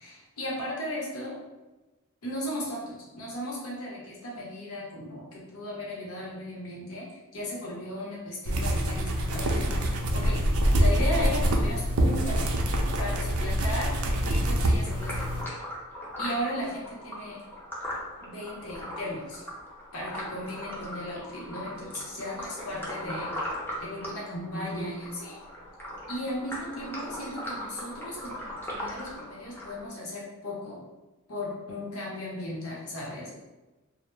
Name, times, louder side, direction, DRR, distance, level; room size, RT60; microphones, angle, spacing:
voice 1, 0.0-1.4 2.2-10.4 10.7-12.5 13.0-15.5 16.2-17.4 18.2-19.4 19.9-23.3 23.8-25.4 26.1-30.8 31.3-33.3, left 1 dB, 85° left, -4 dB, 0.8 m, -36 dB
sound 1, 8.5-15.4, equal, 75° right, 0.4 m, -25 dB
sound 2, 14.8-29.9, equal, 10° left, 0.5 m, -39 dB
2.1 x 2.0 x 3.1 m, 1.1 s
head